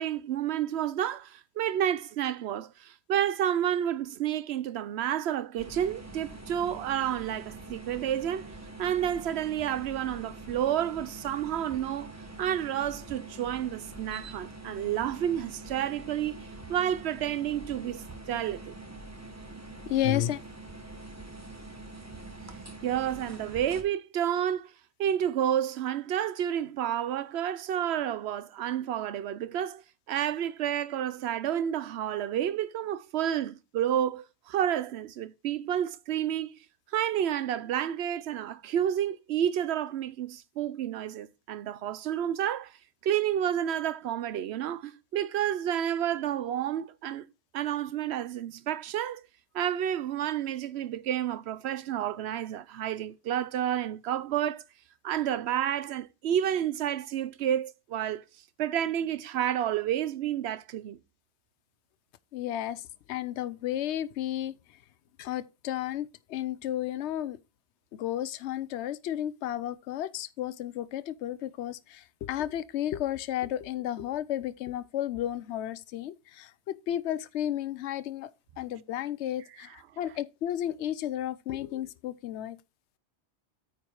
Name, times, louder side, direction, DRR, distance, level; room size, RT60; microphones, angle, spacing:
voice 1, 0.0-18.7 22.8-24.7 25.0-36.6 36.9-42.8 43.0-47.2 47.5-49.2 49.5-54.6 55.0-58.2 58.6-61.0 79.4-80.2, right 10 dB, 70° right, 0.9 m, -30 dB
sound 1, 5.6-23.8, right 2 dB, 15° right, 1.2 m, -45 dB
voice 2, 19.9-20.4 62.3-62.8 63.1-64.5 65.2-66.1 66.3-67.4 68.0-71.8 72.2-76.1 76.9-78.3 78.6-79.7 80.0-82.6, left 12 dB, 75° left, 0.9 m, -32 dB
9.0 x 5.1 x 4.7 m
omnidirectional pair, 1.2 m